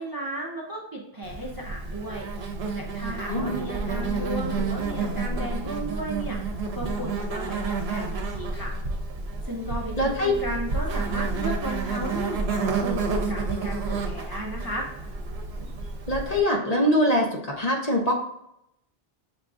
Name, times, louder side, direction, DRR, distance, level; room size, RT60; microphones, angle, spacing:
voice 1, 0.0-2.3 2.7-8.7 9.4-14.9, right 1 dB, 25° right, -2 dB, 0.6 m, -34 dB
Insect, 1.2-16.4, right 3 dB, 80° right, 1.0 m, -30 dB
voice 2, 10.0-10.3 16.1-18.1, left 1 dB, 45° left, 0 dB, 0.8 m, -23 dB
5.7 x 3.6 x 2.4 m, 0.79 s
omnidirectional pair, 1.0 m